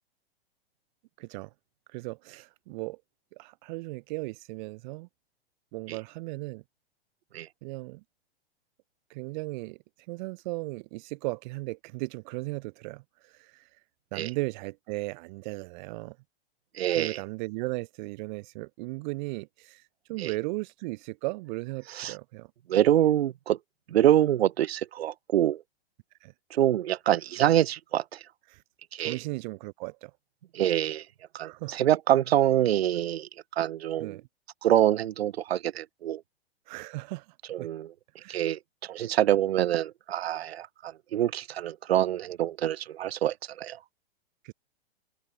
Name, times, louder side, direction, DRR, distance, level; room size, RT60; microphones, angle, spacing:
voice 1, 1.2-1.5 1.9-3.0 3.4-5.1 5.7-6.6 7.6-8.0 9.1-9.8 10.1-13.7 14.1-16.2 16.9-22.5 26.2-26.3 28.5-28.6 29.0-30.1 31.4-31.8 34.0-34.2 36.7-37.3 37.6-37.7 38.2-38.5 44.4-44.5, right 24 dB, 45° right, 1.5 m, -36 dB
voice 2, 16.8-17.2 20.2-20.3 22.0-22.1 22.7-23.6 23.9-25.6 26.5-28.2 28.9-29.2 30.5-31.0 31.3-33.3 33.6-34.2 34.6-36.2 37.5-37.9 38.3-38.6 38.9-43.8, right 12 dB, 75° right, 0.6 m, -25 dB
hypercardioid pair, 110°, 31 cm